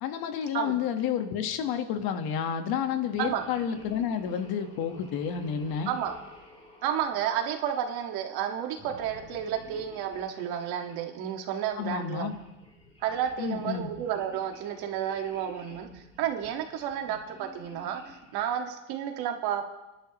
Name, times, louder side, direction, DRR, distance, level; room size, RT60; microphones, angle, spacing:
voice 1, 0.0-5.9 11.8-12.3 13.4-13.9, left 8 dB, 55° left, 7 dB, 1.5 m, -30 dB
sound 1, 3.0-7.9 8.7-11.0 11.7-18.5, left 1 dB, 15° left, 3.2 m, -52 dB
voice 2, 6.8-12.3 13.0-19.7, right 9 dB, 60° right, 4 dB, 1.8 m, -31 dB
29.5 x 11.5 x 3.1 m, 1.0 s
supercardioid pair, 125°, 43 cm